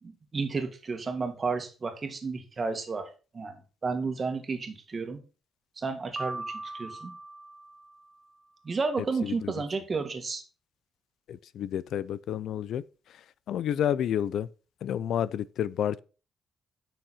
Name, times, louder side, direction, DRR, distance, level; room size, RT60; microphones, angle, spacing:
voice 1, 0.0-5.2 5.8-7.1 8.6-10.4, right 4 dB, 35° right, 2.0 m, -32 dB
Piano, 6.2-8.3, right 2 dB, 15° right, 0.5 m, -40 dB
voice 2, 9.0-9.5 11.3-14.5 14.8-16.0, left 10 dB, 70° left, 0.5 m, -30 dB
9.8 x 6.3 x 4.3 m
cardioid pair, 90°, 0 cm